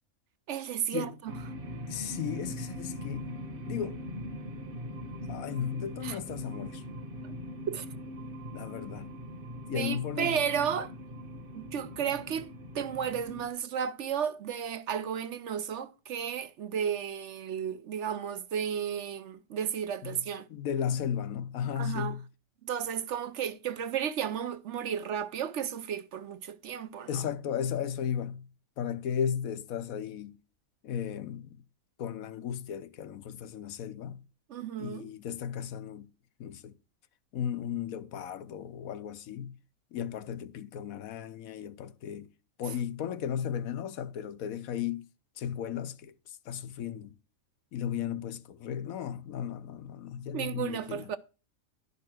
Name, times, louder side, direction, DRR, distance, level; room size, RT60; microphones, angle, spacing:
voice 1, 0.5-1.3 6.0-6.2 7.7-7.9 9.7-10.9 11.5-12.5 12.7-20.5 21.8-22.2 22.6-27.2 34.5-35.1 50.3-51.2, right 8 dB, 60° right, 0.9 m, -33 dB
sound 1, 1.3-13.5, equal, 40° right, 1.3 m, -41 dB
voice 2, 1.9-4.0 5.3-6.8 8.5-9.1 9.7-10.4 20.0-20.2 20.5-22.2 27.1-28.5 28.8-30.3 30.8-31.6 32.0-34.2 34.8-36.1 36.4-36.7 37.3-39.6 39.9-42.3 42.6-45.0 45.4-47.1 47.7-51.1, left 8 dB, 80° left, 1.2 m, -35 dB
11.5 x 5.7 x 6.1 m
omnidirectional pair, 1.5 m